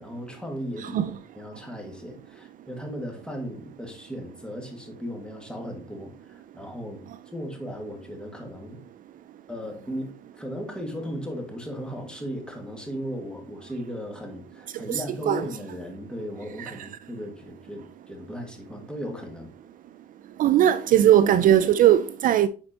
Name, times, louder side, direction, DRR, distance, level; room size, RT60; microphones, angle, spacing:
voice 1, 0.0-7.0 7.3-8.8 9.5-19.5, equal, 5° left, 1.8 m, -36 dB
voice 2, 0.8-1.1 14.7-15.4 16.6-16.9 20.4-22.5, right 11 dB, 55° right, 0.4 m, -20 dB
9.7 x 4.2 x 2.9 m
cardioid pair, 110°, 17 cm